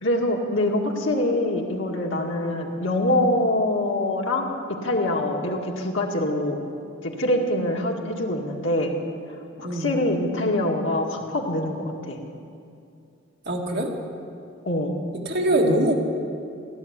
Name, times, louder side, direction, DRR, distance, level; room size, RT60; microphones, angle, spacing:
voice 1, 0.0-4.5 4.8-6.6 7.0-9.0 9.6-12.2 14.7-15.0, left 1 dB, 75° left, 0 dB, 2.0 m, -24 dB
voice 2, 13.5-13.9 15.3-15.9, right 1 dB, 55° right, 0 dB, 1.9 m, -22 dB
16.0 x 11.0 x 8.2 m, 2.5 s
head